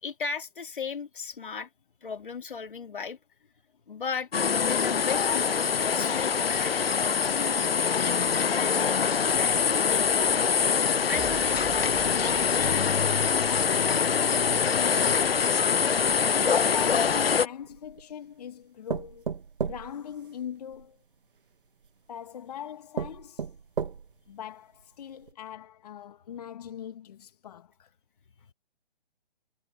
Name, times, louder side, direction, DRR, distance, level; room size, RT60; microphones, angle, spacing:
voice 1, 0.0-1.7 2.0-3.2 3.9-4.3 4.6-8.2 8.6-9.1 9.3-9.6 9.9-10.5 11.1-12.3, left 5 dB, 60° left, 2.7 m, -37 dB
sound 1, 4.3-17.5, left 6 dB, 80° left, 0.6 m, -24 dB
sound 2, 11.1-15.3, right 20 dB, 20° right, 3.0 m, -46 dB
voice 2, 13.5-15.8 16.5-21.0 22.1-23.5 24.3-27.9, left 9 dB, 45° left, 1.8 m, -40 dB
sound 3, 17.2-18.1 18.9-20.9 21.8-21.9 22.5-22.6 23.0-24.3 24.8-24.9 25.2-25.3, right 6 dB, 60° right, 2.0 m, -34 dB
figure-of-eight pair, 135°, 29 cm